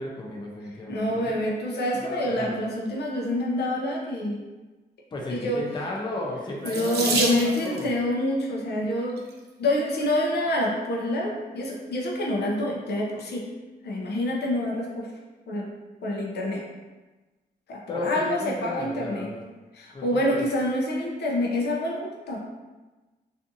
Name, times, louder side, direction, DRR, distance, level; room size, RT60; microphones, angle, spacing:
voice 1, 0.0-1.2 2.0-2.6 5.1-7.2 7.6-7.9 17.9-19.4 19.9-20.4, left 2 dB, 30° left, -2 dB, 0.4 m, -34 dB
voice 2, 0.9-4.4 5.3-5.6 6.6-9.2 9.6-13.4 13.8-15.1 15.5-15.7 16.0-16.6 17.7-19.3 19.7-22.4, left 1 dB, 85° left, -2 dB, 0.5 m, -27 dB
Water tap faucet / Sink (filling or washing), 6.6-7.9 8.9-9.3 10.0-10.1 10.4-10.6, right 3 dB, 75° right, 0.4 m, -28 dB
2.5 x 2.4 x 2.6 m, 1.2 s
wide cardioid pair, 165°, 17 cm